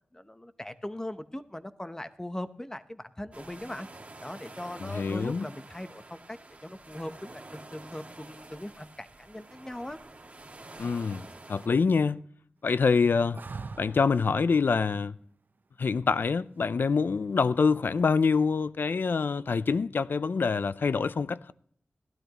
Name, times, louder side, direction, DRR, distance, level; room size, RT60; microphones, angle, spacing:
voice 1, 0.1-3.9 4.2-10.0, left 1 dB, 15° left, 0.8 m, -40 dB
sound 1, 3.3-11.7, right 2 dB, 40° right, 2.0 m, -48 dB
voice 2, 4.8-5.5 10.8-12.2 12.6-13.4 13.8-15.2 15.8-21.5, left 5 dB, 75° left, 0.4 m, -26 dB
sound 2, 13.3-14.3 16.9-17.5, right 4 dB, 60° right, 0.7 m, -41 dB
16.0 x 12.0 x 2.9 m
wide cardioid pair, 65°, 3 cm